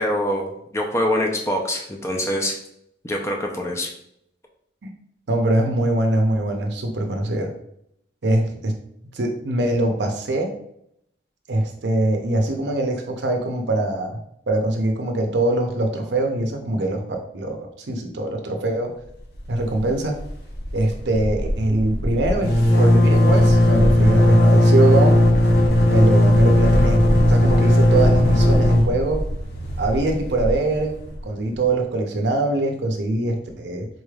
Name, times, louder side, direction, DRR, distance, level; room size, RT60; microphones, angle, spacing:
voice 1, 0.0-2.6 3.0-3.9, left 1 dB, 15° left, 1 dB, 0.5 m, -24 dB
voice 2, 5.3-7.5 8.2-8.8 9.1-10.5 11.5-14.1 14.5-18.9 19.5-20.2 20.7-25.2 25.8-29.2 29.8-30.9 31.2-33.9, right 2 dB, 80° right, 3 dB, 0.6 m, -23 dB
sound 1, 19.4-19.9 20.2-20.3 20.5-31.2, left 1 dB, 60° left, 0.7 m, -17 dB
4.0 x 3.2 x 2.3 m, 0.73 s
head